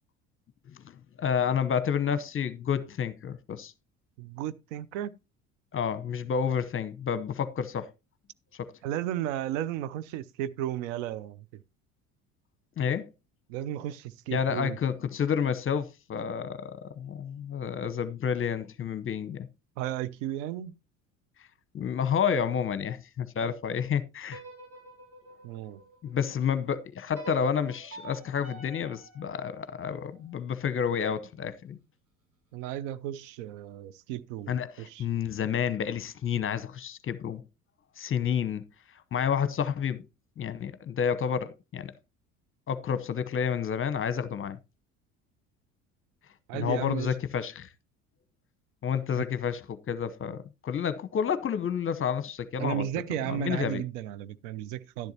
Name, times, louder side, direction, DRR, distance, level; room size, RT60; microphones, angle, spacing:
voice 1, 0.7-3.7 5.7-7.9 8.5-8.7 12.8-13.1 14.3-19.5 21.7-24.4 26.0-31.8 34.5-37.4 38.0-38.6 39.1-40.0 40.4-41.9 42.7-44.6 46.5-47.7 48.8-53.8, left 7 dB, 30° left, 0.9 m, -30 dB
voice 2, 4.2-5.1 8.8-11.6 13.5-14.8 19.8-20.7 25.4-25.8 32.5-34.5 34.8-35.0 46.5-47.1 52.6-55.1, right 12 dB, 65° right, 0.7 m, -34 dB
sound 1, 24.2-26.4 27.1-30.3, right 2 dB, 85° right, 5.7 m, -48 dB
12.0 x 10.5 x 2.8 m
hypercardioid pair, 65°, 41 cm